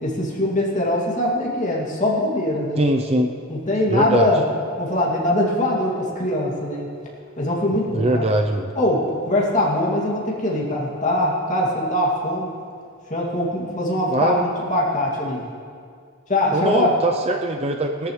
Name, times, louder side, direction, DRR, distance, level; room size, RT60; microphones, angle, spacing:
voice 1, 0.0-2.9 3.5-4.4 4.8-6.9 7.4-8.2 8.7-12.5 13.1-15.5 16.3-16.9, left 1 dB, 35° left, -4 dB, 2.5 m, -22 dB
voice 2, 2.8-3.3 3.9-4.3 7.9-8.7 14.1-14.5 16.5-18.1, right 1 dB, 30° right, 4 dB, 0.5 m, -21 dB
18.5 x 13.5 x 3.3 m, 2.2 s
head